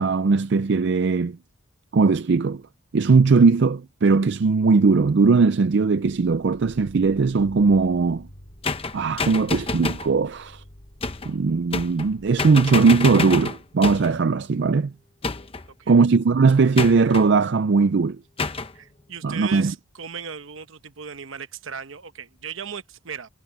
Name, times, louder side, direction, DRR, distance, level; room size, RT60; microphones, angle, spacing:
voice 1, 0.0-1.4 1.9-2.6 2.9-8.3 8.9-10.6 11.3-14.9 15.9-18.2 19.2-19.7, right 4 dB, 60° right, 0.4 m, -19 dB
sound 1, 6.0-13.9, equal, 45° left, 2.7 m, -48 dB
sound 2, 8.6-10.1 11.0-11.3 11.7-12.1 12.4-14.2 15.2-15.7 16.8-17.3 18.4-18.7, left 3 dB, 30° left, 0.9 m, -28 dB
voice 2, 18.7-23.3, right 7 dB, 75° right, 1.0 m, -37 dB
head